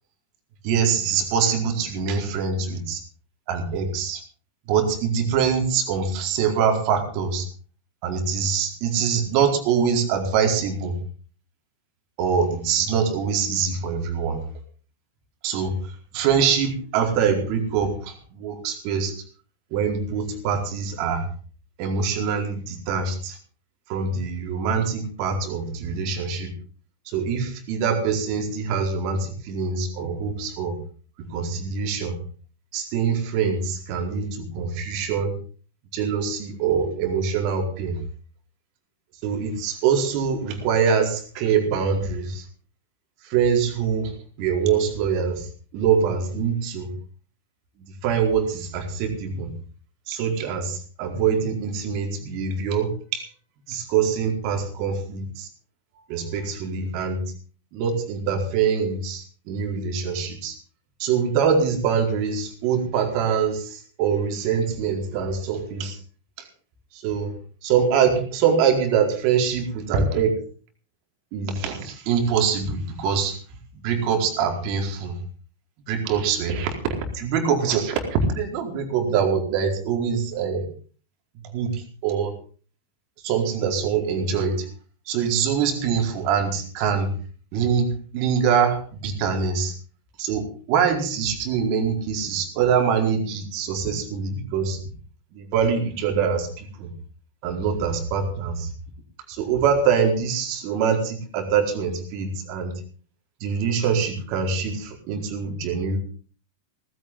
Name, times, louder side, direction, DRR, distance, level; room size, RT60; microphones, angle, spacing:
voice 1, 0.6-3.0 3.5-4.2 4.7-7.5 8.0-11.0 12.2-14.4 15.4-19.1 19.7-21.2 21.8-23.4 23.9-26.5 27.1-30.8 31.2-32.2 32.7-35.4 35.9-38.0 39.2-42.4 43.2-44.1 44.4-45.5 45.7-46.9 48.0-49.5 50.1-53.3 53.7-55.5 56.1-57.2 57.7-60.5 61.0-66.0 66.4-66.5 66.9-67.3 67.6-70.4 71.3-73.4 73.7-75.2 75.9-80.7 81.5-82.4 83.2-84.6 85.1-87.1 87.5-89.7 90.2-94.8 95.3-96.9 97.4-98.7 99.3-102.8 103.4-106.0, right 6 dB, 45° right, 3 dB, 4.6 m, -24 dB
18.5 x 16.0 x 3.9 m, 0.41 s
figure-of-eight pair, 90°, 0 cm